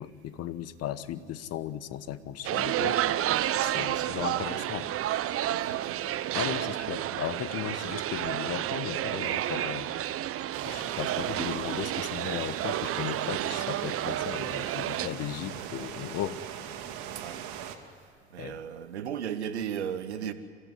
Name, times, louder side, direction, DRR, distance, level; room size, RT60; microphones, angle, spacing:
voice 1, 0.0-3.0 3.6-4.9 6.3-9.9 10.6-16.4 18.4-18.6, left 11 dB, 50° left, 15 dB, 1.2 m, -36 dB
sound 1, 2.4-15.1, right 12 dB, 45° right, 0.9 m, -30 dB
voice 2, 3.8-4.7 5.5-6.6 15.4-15.9 17.1-17.4 18.3-20.3, right 9 dB, 85° right, 11 dB, 1.2 m, -37 dB
sound 2, 10.5-17.8, right 9 dB, 60° right, 2.1 m, -40 dB
26.0 x 15.0 x 9.3 m, 2.4 s
hypercardioid pair, 65°, 33 cm